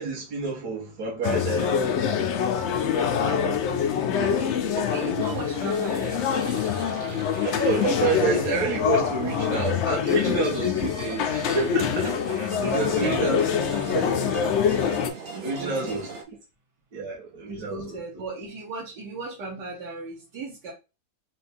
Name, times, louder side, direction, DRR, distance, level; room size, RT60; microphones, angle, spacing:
voice 1, 0.0-1.9 5.0-5.1 7.4-13.4 13.7-14.1 15.4-16.1 16.9-18.2, right 4 dB, 70° right, 2.0 m, -29 dB
sound 1, 1.2-15.1, left 8 dB, 80° left, 0.6 m, -25 dB
voice 2, 2.9-3.6 4.2-6.7 12.5-13.5 13.9-14.0 15.3-16.0 17.5-20.7, right 3 dB, 85° right, 1.8 m, -36 dB
sound 2, 5.2-16.2, right 3 dB, 50° right, 0.6 m, -40 dB
4.2 x 2.4 x 4.1 m
omnidirectional pair, 1.8 m